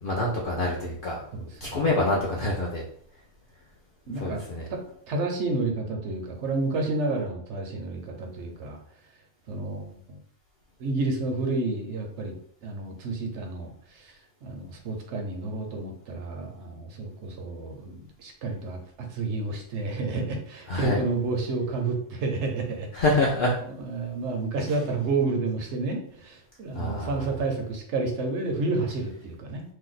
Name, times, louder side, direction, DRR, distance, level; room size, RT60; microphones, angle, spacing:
voice 1, 0.0-1.2 1.6-2.8 4.2-4.7 20.7-21.0 22.9-23.5 26.7-27.3, left 2 dB, 55° left, -3 dB, 0.7 m, -26 dB
voice 2, 1.3-1.8 4.1-4.4 4.7-4.8 5.1-8.8 9.5-10.2 10.8-12.4 12.6-14.2 14.4-22.9 23.8-29.6, right 3 dB, 75° right, 3 dB, 0.9 m, -30 dB
2.7 x 2.2 x 3.9 m, 0.64 s
omnidirectional pair, 1.2 m